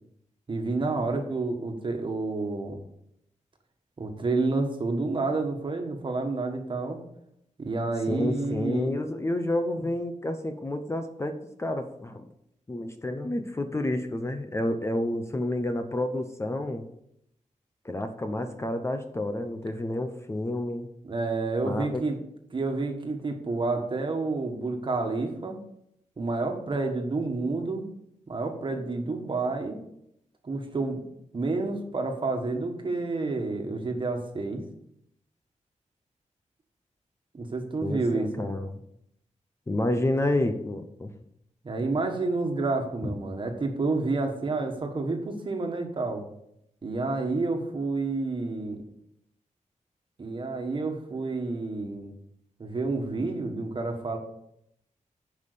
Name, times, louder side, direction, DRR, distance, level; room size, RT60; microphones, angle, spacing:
voice 1, 0.5-2.8 4.0-7.0 7.6-8.9 21.0-22.2 22.5-25.6 26.2-27.8 28.3-29.8 30.4-31.0 31.3-34.6 37.3-38.5 41.6-46.2 46.8-48.8 50.2-52.1 52.6-54.2, right 3 dB, 40° right, 4 dB, 1.6 m, -29 dB
voice 2, 8.1-12.3 12.7-16.9 17.8-20.9 21.6-22.0 37.8-38.8 39.7-41.1, left 1 dB, 20° left, 7 dB, 0.8 m, -29 dB
10.5 x 5.5 x 6.9 m, 0.77 s
wide cardioid pair, 160°, 13 cm